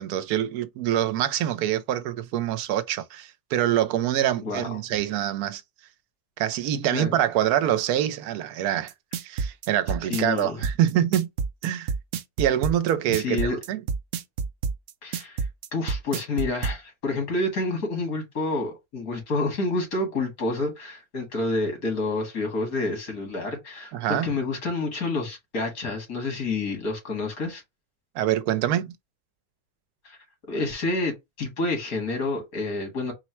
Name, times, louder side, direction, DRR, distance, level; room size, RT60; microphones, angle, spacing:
voice 1, 0.0-5.6 6.4-8.9 9.2-11.3 11.6-11.9 12.4-13.4 13.7-13.8 23.9-24.3 28.1-28.9, right 11 dB, 90° right, 1.1 m, -25 dB
voice 2, 4.4-4.7 6.9-7.1 10.1-10.6 13.1-13.6 15.0-15.5 15.7-27.6 30.0-30.2 30.5-33.1, left 2 dB, 75° left, 2.3 m, -28 dB
sound 1, 8.9-16.8, right 5 dB, 65° right, 0.8 m, -28 dB
4.5 x 2.1 x 4.4 m
omnidirectional pair, 1.5 m